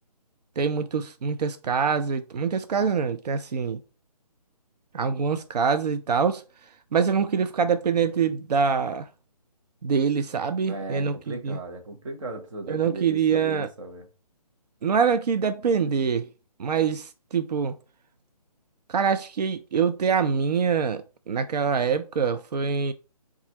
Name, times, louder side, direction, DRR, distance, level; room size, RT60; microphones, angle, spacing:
voice 1, 0.6-3.8 4.9-9.1 9.8-11.6 12.7-13.7 14.8-16.3 16.6-17.7 18.9-22.9, right 6 dB, 80° right, 0.4 m, -25 dB
voice 2, 10.7-14.1, right 3 dB, 50° right, 0.9 m, -37 dB
4.0 x 2.4 x 2.8 m
figure-of-eight pair, 150°, 20 cm